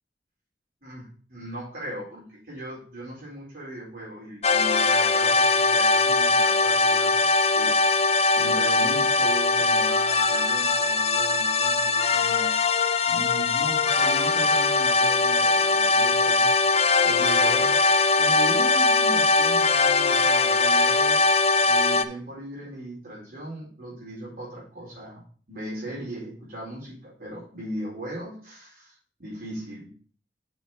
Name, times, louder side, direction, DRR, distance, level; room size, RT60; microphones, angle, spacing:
voice 1, 0.8-7.3 7.5-7.7 8.4-12.5 13.1-16.5 17.0-17.8 18.1-21.2 21.7-25.2 25.5-28.9 29.2-29.9, right 1 dB, 50° right, -7 dB, 4.2 m, -38 dB
sound 1, 4.4-22.1, left 3 dB, 35° left, 0.5 m, -21 dB
7.2 x 4.5 x 5.6 m, 0.43 s
head